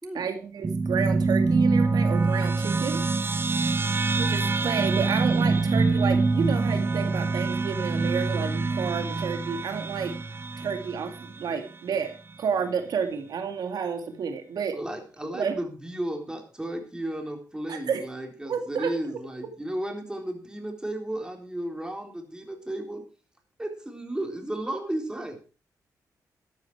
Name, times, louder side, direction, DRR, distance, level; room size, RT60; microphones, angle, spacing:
voice 1, 0.1-3.0 4.2-10.1 10.6-14.8 15.3-15.5 17.7-18.0 18.5-18.9, right 6 dB, 75° right, 6 dB, 2.2 m, -30 dB
sound 1, 0.6-11.4, right 3 dB, 35° right, 1.0 m, -25 dB
voice 2, 14.7-23.0 23.6-25.5, right 1 dB, 10° right, 4 dB, 3.8 m, -34 dB
13.5 x 10.5 x 4.7 m, 0.36 s
cardioid pair, 90°, 7 cm